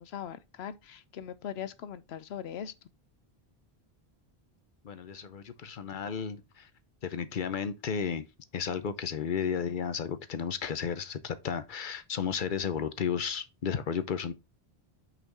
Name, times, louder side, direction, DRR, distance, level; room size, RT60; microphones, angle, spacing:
voice 1, 0.0-2.7, left 9 dB, 80° left, 0.9 m, -40 dB
voice 2, 4.8-6.7 7.0-8.3 8.5-14.3, left 7 dB, 55° left, 0.8 m, -33 dB
5.8 x 4.3 x 3.9 m
omnidirectional pair, 1.1 m